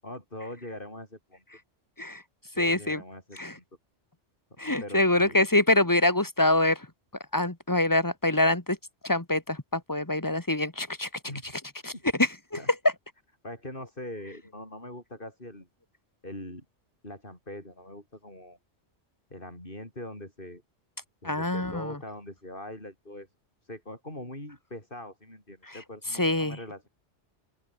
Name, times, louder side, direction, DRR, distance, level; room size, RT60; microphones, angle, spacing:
voice 1, 0.0-1.4 2.5-3.6 4.6-5.4 11.3-11.5 11.9-12.0 12.6-12.7 13.4-15.7 16.2-16.6 17.0-18.6 19.3-20.6 21.2-23.3 23.6-26.9, left 1 dB, 45° left, 7.9 m, -42 dB
voice 2, 2.6-3.0 3.4-3.5 4.6-6.9 7.3-8.8 9.0-11.1 11.8-11.9 12.2-12.6 21.2-22.0 25.7-25.8 26.2-26.6, left 1 dB, 15° left, 1.9 m, -25 dB
open air
omnidirectional pair, 1.2 m